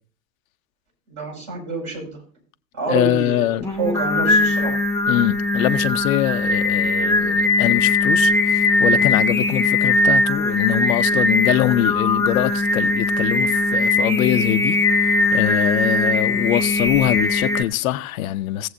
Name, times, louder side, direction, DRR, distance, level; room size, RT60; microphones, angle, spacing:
voice 1, 1.1-2.2 2.7-3.5 3.8-4.7, right 4 dB, 35° right, 5.5 m, -27 dB
voice 2, 2.9-3.6 5.1-14.8 15.3-18.7, left 14 dB, 55° left, 0.7 m, -23 dB
Singing, 3.6-17.6, left 2 dB, 5° left, 0.7 m, -20 dB
18.5 x 7.7 x 2.6 m
figure-of-eight pair, 85°, 49 cm